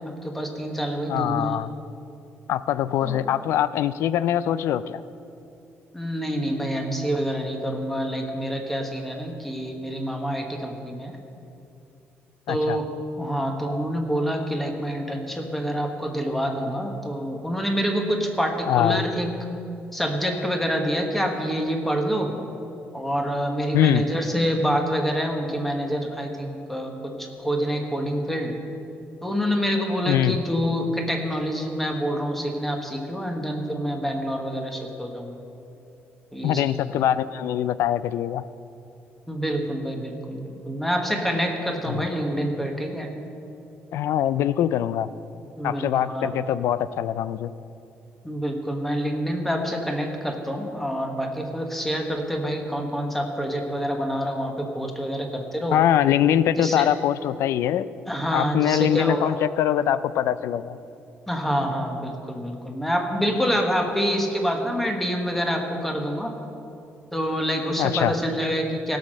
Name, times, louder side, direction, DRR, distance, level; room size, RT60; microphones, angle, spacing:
voice 1, 0.2-1.6 3.0-3.2 5.9-11.1 12.5-12.9 13.2-19.3 19.9-22.3 22.9-28.5 29.2-35.3 36.3-36.9 39.3-43.1 45.6-46.3 48.2-55.8 56.6-56.9 58.1-59.3 61.3-66.3 67.1-69.0, equal, 5° left, 3 dB, 1.3 m, -27 dB
voice 2, 1.1-1.7 2.5-5.0 12.5-12.8 18.7-19.1 23.7-24.1 30.1-30.4 36.4-38.4 41.9-42.0 43.9-45.1 45.6-47.5 55.7-57.9 58.3-60.8 67.8-68.1, left 11 dB, 80° left, 16 dB, 0.4 m, -23 dB
16.5 x 6.4 x 6.4 m, 2.7 s
cardioid pair, 140°, 5 cm